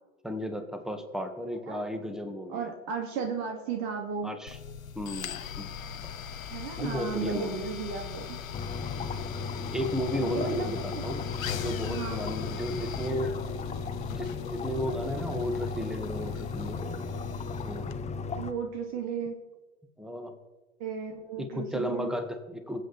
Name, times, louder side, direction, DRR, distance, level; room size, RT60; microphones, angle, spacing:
voice 1, 0.2-2.7 4.2-4.6 4.9-5.7 6.7-7.7 9.7-13.4 14.1-17.1 17.6-17.9 20.0-20.4 21.4-22.9, equal, ahead, 7 dB, 1.7 m, -34 dB
voice 2, 2.5-4.3 6.5-8.4 10.2-10.7 10.9-11.0 11.9-12.3 18.4-19.4 20.8-22.1, right 6 dB, 50° right, 2 dB, 2.5 m, -34 dB
sound 1, 4.5-18.0, left 8 dB, 80° left, 1.1 m, -40 dB
sound 2, 8.5-18.5, left 4 dB, 15° left, 1.0 m, -36 dB
22.5 x 8.0 x 4.3 m, 1.2 s
hypercardioid pair, 105°, 40 cm